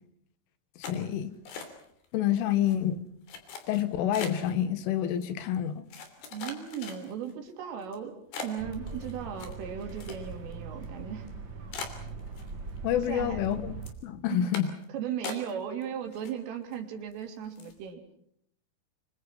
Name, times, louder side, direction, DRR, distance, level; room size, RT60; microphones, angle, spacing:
sound 1, 0.8-2.1 2.4-2.8 3.3-4.5 5.2-5.3 5.9-7.3 7.8-8.0 8.3-10.5 10.8-10.9 11.3-11.4 11.7-12.8 13.1-13.5 13.8-14.0 14.5-14.9 15.2-15.8 16.1-16.8 17.1-17.2 17.6-17.8, left 5 dB, 60° left, 5.0 m, -41 dB
voice 1, 0.9-1.3 2.1-3.0 3.7-5.8 12.8-13.8 14.0-14.7, left 10 dB, 80° left, 4.0 m, -28 dB
voice 2, 6.3-11.3 13.0-13.4 14.3-14.6 14.9-18.0, right 8 dB, 80° right, 5.4 m, -37 dB
sound 2, 8.6-13.9, right 4 dB, 45° right, 1.5 m, -41 dB
26.0 x 25.5 x 5.8 m
omnidirectional pair, 5.7 m